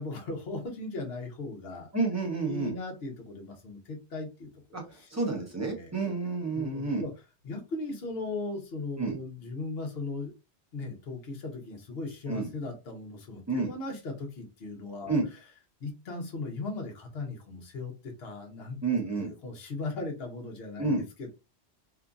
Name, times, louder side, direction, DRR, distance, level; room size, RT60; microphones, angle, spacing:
voice 1, 0.0-1.9 2.4-5.9 6.5-7.1 7.4-10.3 10.7-15.1 15.8-18.8 19.2-21.3, left 3 dB, 65° left, 2 dB, 1.0 m, -38 dB
voice 2, 1.9-2.8 4.7-7.0 9.0-9.2 12.3-12.5 13.5-13.7 15.1-15.2 18.8-19.3 20.8-21.0, right 3 dB, 15° right, 0 dB, 0.8 m, -30 dB
2.9 x 2.4 x 2.4 m, 0.28 s
omnidirectional pair, 1.2 m